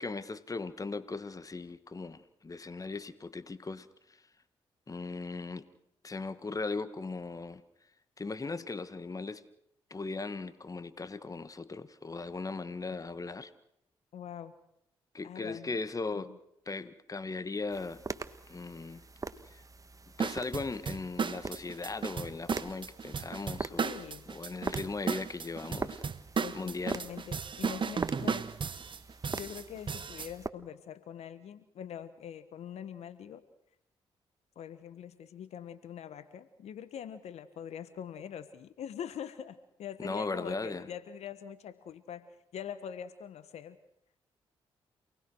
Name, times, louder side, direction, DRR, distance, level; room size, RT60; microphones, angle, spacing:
voice 1, 0.0-3.9 4.9-5.6 6.0-7.6 8.2-9.4 9.9-13.5 15.1-16.3 16.7-18.0 18.5-19.0 19.5-19.6 20.2-23.9 24.3-26.0 26.5-27.0 40.0-40.8, left 3 dB, 30° left, 14 dB, 1.5 m, -38 dB
voice 2, 14.1-14.5 15.2-15.7 16.1-16.4 23.8-24.3 26.3-28.5 29.3-33.4 34.5-42.3 42.5-43.8, left 8 dB, 75° left, 13 dB, 1.5 m, -43 dB
sound 1, 17.7-30.5, right 3 dB, 30° right, 1.5 m, -43 dB
sound 2, 20.2-30.3, right 6 dB, 45° right, 1.1 m, -35 dB
28.0 x 19.5 x 6.4 m, 0.75 s
supercardioid pair, 50°, 11 cm